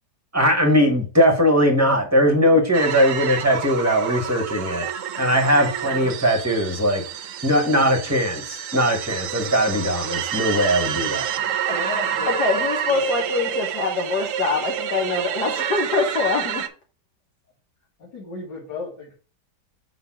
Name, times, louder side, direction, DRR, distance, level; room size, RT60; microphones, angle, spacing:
voice 1, 0.3-4.9 5.2-7.0 7.4-11.3, equal, 10° right, 4 dB, 0.9 m, -20 dB
sound 1, 2.7-16.7, right 9 dB, 65° right, 0.8 m, -28 dB
voice 2, 11.3-13.1 18.0-19.1, left 4 dB, 90° left, -5 dB, 2.8 m, -36 dB
voice 3, 12.3-16.6, left 4 dB, 70° left, 1 dB, 1.7 m, -24 dB
5.4 x 3.9 x 5.9 m, 0.37 s
omnidirectional pair, 1.8 m